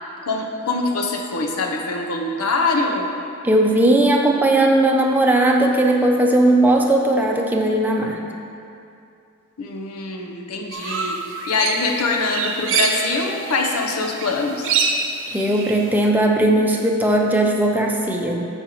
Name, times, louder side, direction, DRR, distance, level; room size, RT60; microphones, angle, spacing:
voice 1, 0.2-3.1 9.6-11.2 11.5-14.7, left 3 dB, 90° left, 2 dB, 0.9 m, -23 dB
voice 2, 3.4-8.2 15.3-18.3, right 1 dB, 10° right, 0 dB, 0.6 m, -17 dB
sound 1, 10.7-13.8 14.1-16.0, right 5 dB, 60° right, 0.6 m, -25 dB
9.8 x 6.6 x 3.1 m, 2.5 s
head